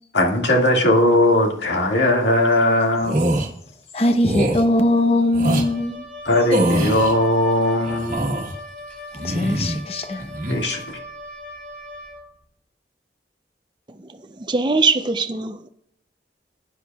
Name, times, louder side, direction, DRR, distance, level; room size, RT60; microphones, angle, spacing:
voice 1, 0.1-3.2 6.3-8.3 10.5-10.8, left 1 dB, 80° left, 2.0 m, -18 dB
sound 1, 3.0-3.5 4.2-4.6 5.3-5.7 6.5-7.1 7.8-8.5 9.1-9.8 10.2-10.6, right 1 dB, 45° right, 1.3 m, -23 dB
voice 2, 3.9-6.0 9.2-10.2, left 1 dB, 35° left, 0.9 m, -20 dB
Wind instrument woodwind instrument, 5.5-12.2, left 2 dB, 5° left, 3.3 m, -38 dB
voice 3, 14.4-15.7, right 4 dB, 25° right, 0.5 m, -21 dB
15.5 x 9.9 x 2.3 m
head